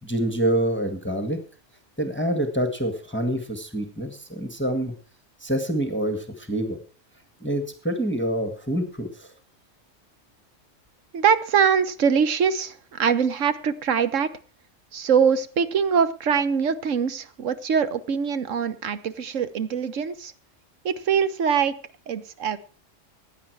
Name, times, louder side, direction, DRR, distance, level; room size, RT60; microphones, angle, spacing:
voice 1, 0.0-1.4 2.0-4.9 5.4-6.8 7.4-9.3, right 1 dB, 10° left, 6 dB, 1.6 m, -26 dB
voice 2, 11.1-14.3 14.9-20.3 20.8-21.7 22.1-22.6, right 7 dB, 90° right, 13 dB, 1.4 m, -23 dB
16.0 x 10.0 x 4.6 m, 0.40 s
omnidirectional pair, 1.3 m